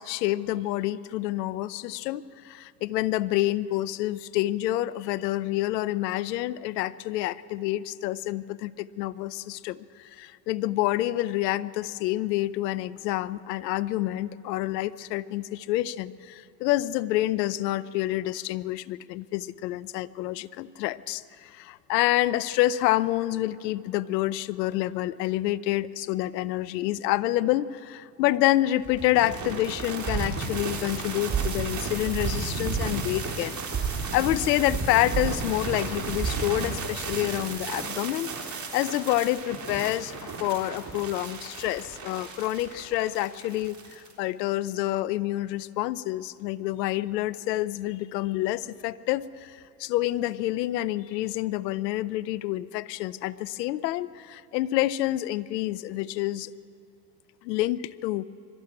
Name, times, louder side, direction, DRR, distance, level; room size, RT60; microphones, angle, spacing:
voice 1, 0.0-33.6 33.9-38.3 38.7-56.5 57.4-58.2, left 15 dB, 85° left, 19 dB, 0.7 m, -28 dB
sound 1, 28.8-44.1, right 4 dB, 35° right, 3.8 m, -32 dB
22.0 x 13.5 x 9.7 m, 2.7 s
hypercardioid pair, 80°, 48 cm